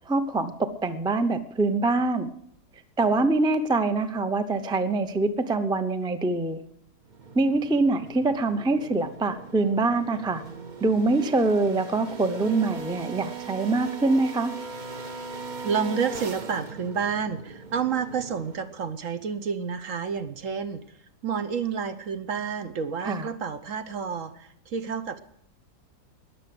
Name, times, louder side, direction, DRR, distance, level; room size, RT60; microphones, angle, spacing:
voice 1, 0.1-0.5 0.8-2.3 3.0-6.6 7.3-10.4 10.8-14.5 23.0-23.3, right 3 dB, 5° right, 9 dB, 0.5 m, -24 dB
sound 1, 7.1-18.9, right 4 dB, 35° right, 0.9 m, -39 dB
voice 2, 15.6-20.8 21.2-25.2, right 6 dB, 60° right, 10 dB, 1.2 m, -30 dB
20.5 x 7.0 x 7.8 m, 0.71 s
omnidirectional pair, 1.7 m